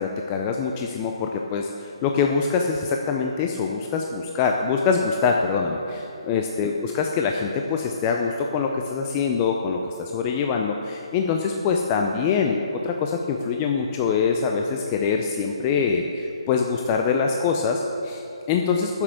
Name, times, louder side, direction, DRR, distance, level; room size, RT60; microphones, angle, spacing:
voice 1, 0.0-12.6 12.8-19.0, left 5 dB, 20° left, 2 dB, 0.5 m, -24 dB
7.3 x 7.3 x 7.9 m, 2.9 s
hypercardioid pair, 160°, 3 cm